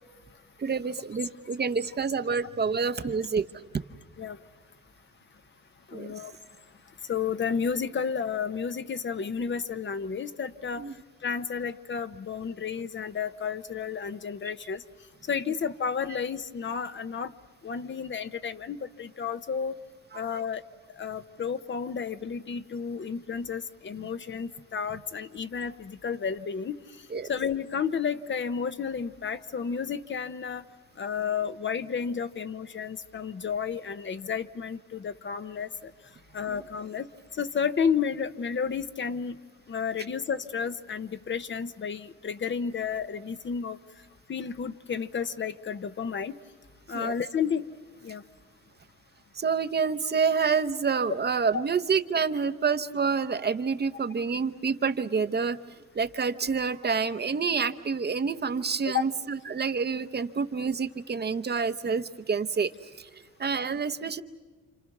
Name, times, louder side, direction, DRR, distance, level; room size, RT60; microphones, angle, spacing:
voice 1, 0.6-3.4 5.9-6.1 10.8-10.9 20.1-20.4 27.1-27.3 36.5-36.6 46.9-47.1 49.4-55.6 56.0-62.7 63.4-64.2, right 5 dB, 35° right, 10 dB, 0.9 m, -28 dB
voice 2, 5.9-6.3 7.1-10.8 11.2-14.8 15.3-17.3 17.6-19.7 20.1-20.6 21.0-26.8 27.3-30.6 31.0-35.9 36.3-37.1 37.3-39.4 39.7-43.8 44.3-46.4 46.9-47.7 48.0-48.2 51.5-51.7 58.8-59.0, left 6 dB, 40° left, 11 dB, 0.9 m, -31 dB
30.0 x 26.5 x 6.0 m, 1.5 s
cardioid pair, 90°, 30 cm